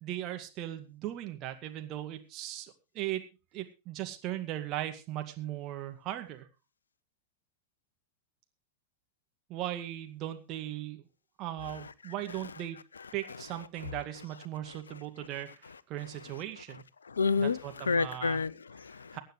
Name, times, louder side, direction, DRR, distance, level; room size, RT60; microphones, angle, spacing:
voice 1, 0.0-3.3 3.5-6.5 9.5-11.1 11.4-12.8 13.1-16.8 17.4-18.4 19.1-19.2, right 13 dB, 35° right, 2.1 m, -38 dB
voice 2, 17.1-19.2, left 4 dB, 75° left, 0.6 m, -30 dB
23.5 x 9.2 x 3.3 m
figure-of-eight pair, 90°, 0 cm